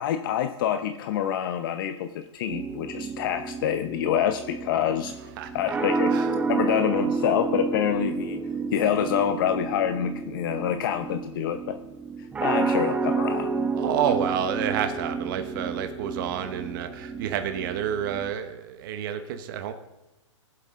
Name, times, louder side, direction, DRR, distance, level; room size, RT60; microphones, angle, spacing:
voice 1, 0.0-5.1 5.5-6.2 6.5-8.4 8.7-11.8 12.4-13.5, left 9 dB, 45° left, 8 dB, 0.6 m, -26 dB
sound 1, 2.5-18.3, right 4 dB, 10° right, 0.8 m, -30 dB
voice 2, 5.4-5.8 6.1-6.3 13.8-19.7, right 9 dB, 40° right, 8 dB, 0.9 m, -29 dB
19.5 x 7.7 x 3.6 m, 0.99 s
hypercardioid pair, 145°, 16 cm